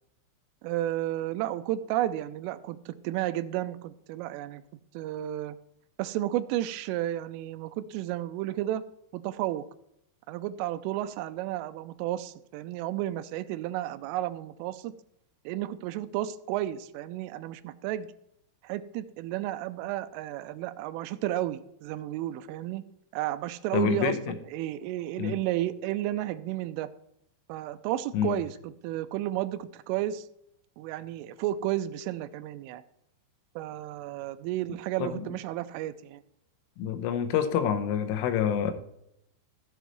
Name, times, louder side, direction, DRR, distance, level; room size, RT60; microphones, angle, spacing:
voice 1, 0.6-4.6 4.9-5.6 6.0-8.8 9.1-9.7 10.3-14.9 15.5-18.1 18.6-22.8 23.1-24.2 24.5-26.9 27.5-30.3 30.8-32.8 33.6-36.2, right 13 dB, 85° right, 3.1 m, -32 dB
voice 2, 23.7-24.4 25.2-25.4 28.1-28.4 35.0-35.3 36.8-38.7, left 8 dB, 85° left, 3.5 m, -27 dB
15.0 x 8.0 x 3.1 m
omnidirectional pair, 5.7 m